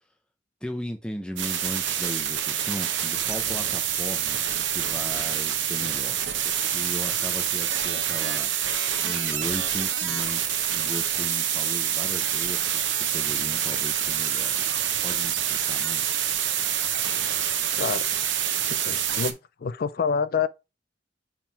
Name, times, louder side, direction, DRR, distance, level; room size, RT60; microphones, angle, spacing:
voice 1, 0.6-4.4 4.7-16.2, left 1 dB, 5° left, 0.6 m, -37 dB
sound 1, 1.4-19.3, right 9 dB, 70° right, 0.9 m, -26 dB
voice 2, 18.7-20.5, left 6 dB, 50° left, 0.4 m, -27 dB
4.8 x 3.7 x 5.6 m
head